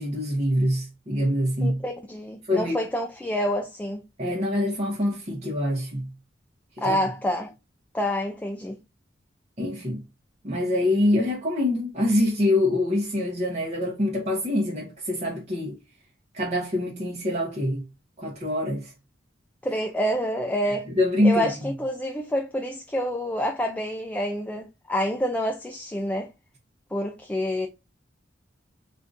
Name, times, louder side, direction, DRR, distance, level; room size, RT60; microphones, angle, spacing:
voice 1, 0.0-1.8 2.4-2.8 4.2-6.1 6.8-7.0 9.6-10.0 10.4-15.8 16.3-17.8 18.2-18.9 20.6-21.5, left 1 dB, 40° right, 0.8 m, -25 dB
voice 2, 1.6-4.0 6.8-7.5 7.9-8.8 19.6-20.9 21.2-26.3 26.9-27.7, equal, 10° left, 0.3 m, -28 dB
3.6 x 2.5 x 2.5 m
head